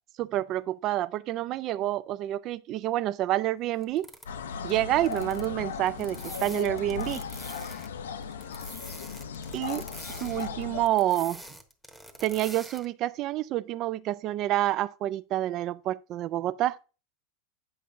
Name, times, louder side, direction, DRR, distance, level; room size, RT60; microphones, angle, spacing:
voice 1, 0.2-4.1 4.6-7.2 9.5-9.8 10.2-11.4 12.2-16.8, right 14 dB, 45° right, 0.3 m, -28 dB
sound 1, 3.8-4.3 4.7-4.8 5.1-5.5 5.8-7.9 8.2-12.9, equal, ahead, 1.0 m, -46 dB
sound 2, 4.3-10.9, left 6 dB, 80° left, 0.4 m, -37 dB
8.4 x 5.4 x 2.5 m
hypercardioid pair, 90°, 0 cm